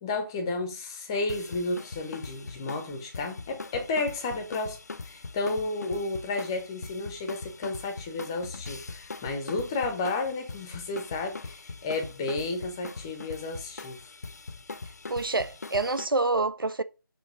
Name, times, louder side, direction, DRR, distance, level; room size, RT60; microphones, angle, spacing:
voice 1, 0.0-4.8 5.0-14.0, left 3 dB, 10° left, 0.7 m, -32 dB
sound 1, 1.3-16.1, left 3 dB, 50° left, 0.6 m, -41 dB
voice 2, 15.1-16.8, right 3 dB, 75° right, 0.8 m, -27 dB
6.2 x 4.8 x 6.4 m
figure-of-eight pair, 160°, 12 cm